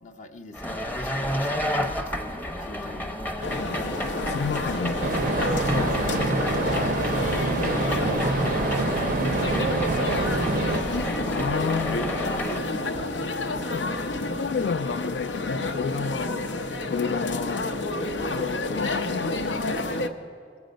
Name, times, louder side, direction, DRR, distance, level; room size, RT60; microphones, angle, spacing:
voice 1, 0.0-3.9 5.7-10.6 16.2-16.4 17.3-18.4, left 3 dB, 45° left, 5 dB, 0.7 m, -44 dB
sound 1, 0.5-12.6, equal, 10° left, 0.7 m, -31 dB
sound 2, 3.4-20.1, left 2 dB, 85° left, 0.8 m, -30 dB
voice 2, 4.2-5.0 5.5-6.1 11.2-12.1 13.7-16.6 16.9-17.7 18.3-20.2, left 6 dB, 70° left, 9 dB, 0.3 m, -31 dB
sound 3, 5.0-10.8, right 2 dB, 50° right, 0.5 m, -26 dB
21.5 x 7.9 x 5.2 m, 2.3 s
head